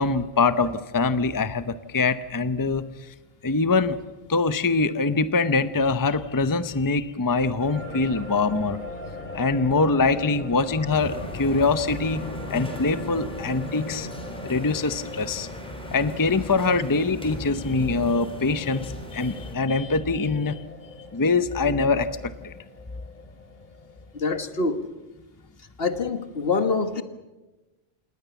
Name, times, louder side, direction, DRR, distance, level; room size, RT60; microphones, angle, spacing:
voice 1, 0.0-2.9 3.4-4.0 4.3-8.8 9.3-12.2 12.5-14.1 14.4-15.5 15.9-20.6 21.1-22.5, left 3 dB, 20° left, 13 dB, 0.7 m, -23 dB
sound 1, 7.6-24.2, left 2 dB, 50° left, 2.5 m, -40 dB
sound 2, 10.9-19.5, equal, 5° left, 3.8 m, -39 dB
voice 2, 24.1-24.8 25.8-27.0, left 4 dB, 70° left, 10 dB, 1.7 m, -25 dB
28.0 x 19.0 x 7.1 m, 1.1 s
omnidirectional pair, 1.1 m